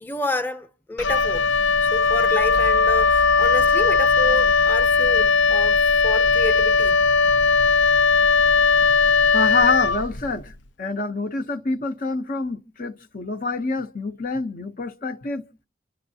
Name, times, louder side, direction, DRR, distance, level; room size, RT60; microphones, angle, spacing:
voice 1, 0.0-1.5 1.8-7.0, left 2 dB, 10° left, 0.8 m, -30 dB
Wind instrument woodwind instrument, 1.0-10.5, left 4 dB, 85° left, 0.7 m, -18 dB
voice 2, 9.3-15.5, left 3 dB, 50° left, 0.7 m, -27 dB
28.5 x 12.0 x 2.7 m
head